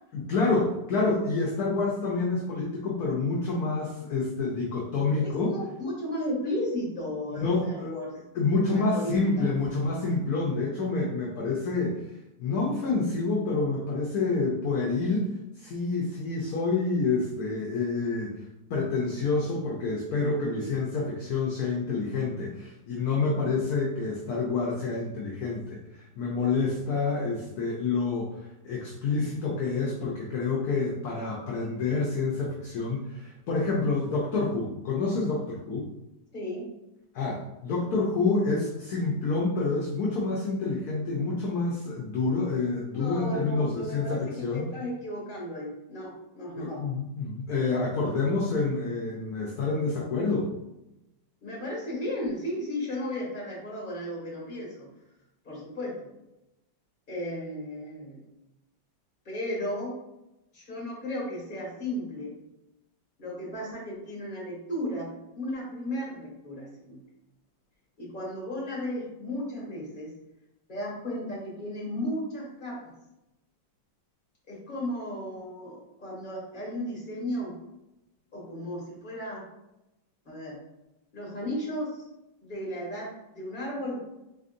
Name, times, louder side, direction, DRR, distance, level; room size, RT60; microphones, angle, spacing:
voice 1, 0.1-5.5 7.3-7.9 8.3-12.0 12.4-15.3 15.6-18.4 18.7-28.3 28.6-35.9 37.1-44.7 46.5-50.5, left 3 dB, 65° left, -3 dB, 1.0 m, -28 dB
voice 2, 5.2-8.1 8.4-9.5 36.3-36.7 42.9-46.9 51.4-54.9 55.4-56.1 57.1-58.2 59.2-59.9 60.5-62.3 63.2-65.1 65.3-67.0 68.0-70.1 70.7-72.9 74.5-77.5 78.3-79.4 80.2-80.6 81.1-82.0 82.4-84.0, left 1 dB, 25° left, -6 dB, 1.6 m, -34 dB
3.9 x 3.5 x 2.5 m, 0.91 s
omnidirectional pair, 2.1 m